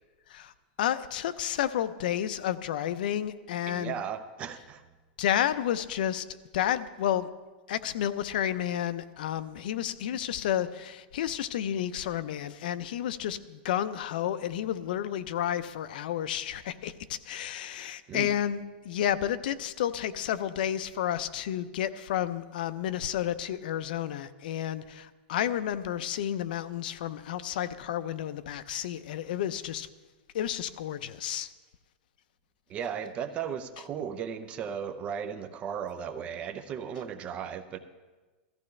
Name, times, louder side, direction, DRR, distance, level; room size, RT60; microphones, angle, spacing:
voice 1, 0.8-4.0 5.2-6.3 6.5-7.3 7.7-29.9 30.3-31.5, left 10 dB, 65° left, 13 dB, 0.6 m, -31 dB
voice 2, 3.7-4.8 18.1-18.3 32.7-37.8, right 8 dB, 25° right, 10 dB, 0.6 m, -36 dB
16.5 x 14.0 x 3.3 m, 1.3 s
supercardioid pair, 160°, 5 cm